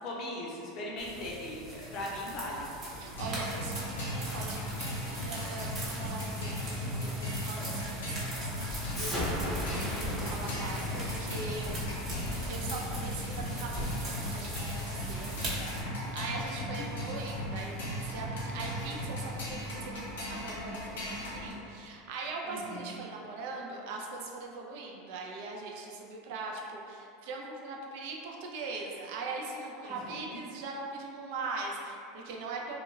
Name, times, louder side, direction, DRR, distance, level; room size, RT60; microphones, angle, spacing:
voice 1, 0.0-2.6 15.1-16.1 16.8-16.9 22.4-22.9 29.8-30.4, left 1 dB, 50° left, -4 dB, 0.6 m, -40 dB
sound 1, 1.0-15.8, right 1 dB, 40° right, 0.8 m, -41 dB
voice 2, 3.0-12.0 12.5-15.4 16.1-32.8, right 3 dB, 65° right, -1 dB, 0.4 m, -41 dB
sound 2, 3.1-21.5, left 1 dB, 85° left, 0.6 m, -37 dB
Explosion, 8.9-14.0, left 1 dB, ahead, 0.7 m, -37 dB
2.2 x 2.1 x 3.0 m, 2.6 s
supercardioid pair, 110°, 0 cm